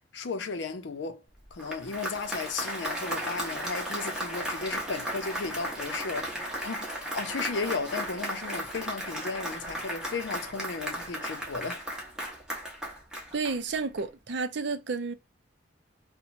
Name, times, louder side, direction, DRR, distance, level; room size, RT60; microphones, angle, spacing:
voice 1, 0.1-1.2 1.5-11.8, left 4 dB, 70° left, 0.6 m, -35 dB
Applause, 1.4-14.0, equal, 5° right, 0.8 m, -35 dB
voice 2, 13.3-15.1, right 4 dB, 65° right, 0.5 m, -31 dB
3.0 x 2.1 x 2.5 m
head